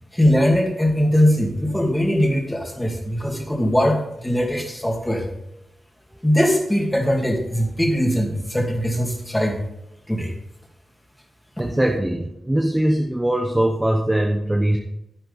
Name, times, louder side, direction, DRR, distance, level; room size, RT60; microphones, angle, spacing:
voice 1, 0.1-5.3 6.1-9.6 10.1-10.3 11.6-11.7, equal, 5° left, 1 dB, 2.3 m, -21 dB
voice 2, 11.6-14.8, right 1 dB, 10° right, 1 dB, 1.0 m, -21 dB
11.0 x 10.5 x 4.1 m, 0.86 s
wide cardioid pair, 170°, 0 cm